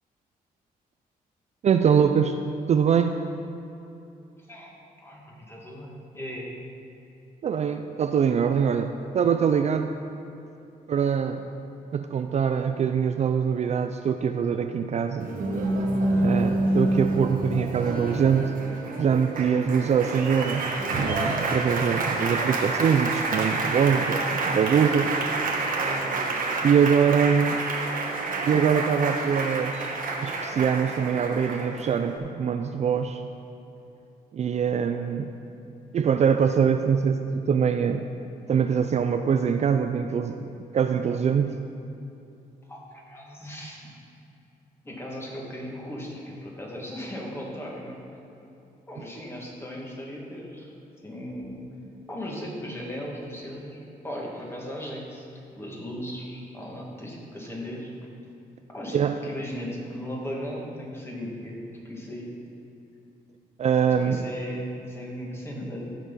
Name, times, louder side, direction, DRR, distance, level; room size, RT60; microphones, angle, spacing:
voice 1, 1.6-2.4 2.7-3.2 7.4-9.9 10.9-11.4 11.9-15.3 16.2-18.5 19.0-20.6 20.9-25.1 26.6-27.6 28.4-29.9 30.2-33.2 34.3-35.3 35.9-38.0 38.5-41.5 58.9-59.2 63.6-64.2, right 7 dB, 45° right, 7 dB, 0.4 m, -23 dB
voice 2, 4.5-6.5 42.7-43.9 44.8-48.0 48.9-50.7 51.0-51.6 52.1-57.9 58.7-62.3 64.0-65.9, equal, 15° left, -3 dB, 2.2 m, -37 dB
Applause, 15.2-32.2, right 2 dB, 65° right, 1.3 m, -28 dB
15.0 x 6.0 x 4.1 m, 2.8 s
cardioid pair, 105°, 15 cm